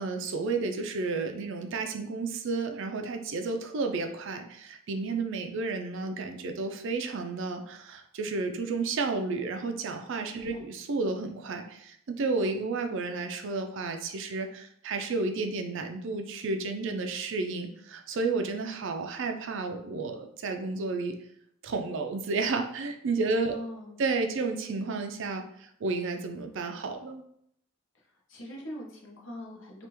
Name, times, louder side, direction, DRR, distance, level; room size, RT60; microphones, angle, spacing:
voice 1, 0.0-21.1 21.6-23.5 24.0-27.2, right 3 dB, 65° right, 5 dB, 0.4 m, -32 dB
voice 2, 10.3-10.7 23.5-24.0 27.9-29.9, left 1 dB, 70° left, -1 dB, 0.9 m, -42 dB
3.4 x 2.4 x 3.0 m, 0.70 s
head